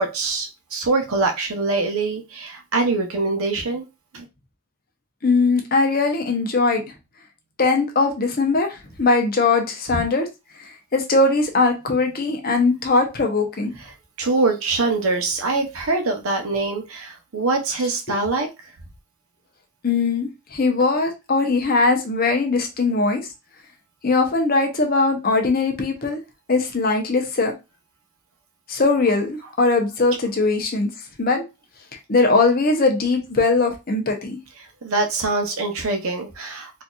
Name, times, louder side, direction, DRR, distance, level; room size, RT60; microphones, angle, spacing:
voice 1, 0.0-3.8 4.1-4.3 14.2-18.5 34.8-36.8, right 3 dB, 70° right, 0.8 m, -23 dB
voice 2, 5.2-6.8 7.6-10.3 10.9-13.7 19.8-23.2 24.0-26.2 26.5-27.5 28.7-30.9 31.2-31.4 32.1-34.4, left 3 dB, 40° left, 0.7 m, -20 dB
4.0 x 2.7 x 2.3 m
head